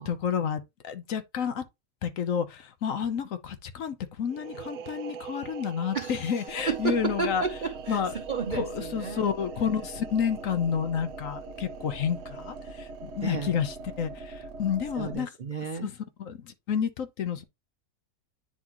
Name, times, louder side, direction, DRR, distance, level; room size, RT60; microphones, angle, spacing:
voice 1, 0.1-1.6 2.0-7.4 7.9-8.1 8.5-15.3 15.8-15.9 16.2-17.4, left 7 dB, 60° left, 1.1 m, -30 dB
sound 1, 4.3-13.8, right 7 dB, 65° right, 1.0 m, -45 dB
voice 2, 5.9-6.3 6.7-9.2 13.2-13.5 15.0-15.9, right 5 dB, 90° right, 0.4 m, -32 dB
sound 2, 6.5-15.1, right 3 dB, 45° right, 1.5 m, -42 dB
9.5 x 3.8 x 3.0 m
omnidirectional pair, 1.7 m